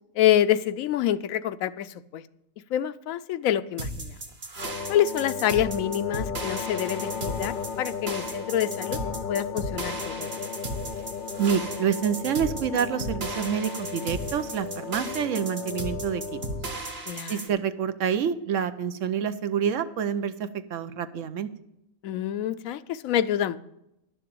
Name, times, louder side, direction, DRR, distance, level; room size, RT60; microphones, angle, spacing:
voice 1, 0.2-1.9 2.1-2.2 2.7-4.1 4.9-9.0 9.3-10.3 17.1-17.4 22.0-23.6, left 11 dB, 80° left, 14 dB, 1.0 m, -26 dB
sound 1, 3.8-17.5, right 2 dB, 45° right, 1.7 m, -35 dB
sound 2, 4.6-16.8, left 6 dB, 60° left, 0.5 m, -35 dB
voice 2, 11.4-16.4 17.3-21.5, right 8 dB, 70° right, 12 dB, 1.0 m, -27 dB
11.0 x 6.8 x 7.7 m, 0.83 s
omnidirectional pair, 1.4 m